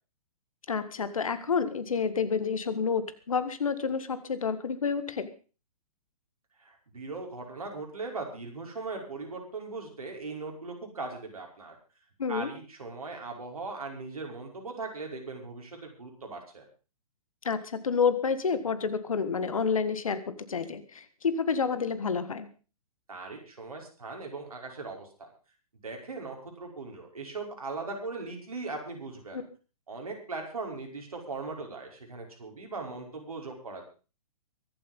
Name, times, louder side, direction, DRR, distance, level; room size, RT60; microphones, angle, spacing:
voice 1, 0.7-5.3 12.2-12.5 17.5-22.5 29.3-29.4, left 5 dB, 65° left, 13 dB, 1.8 m, -29 dB
voice 2, 6.6-11.7 12.3-16.6 23.1-25.3 25.8-29.4 29.9-33.8, right 3 dB, 70° right, 1 dB, 5.4 m, -39 dB
23.5 x 8.0 x 5.4 m, 0.36 s
figure-of-eight pair, 120°, 19 cm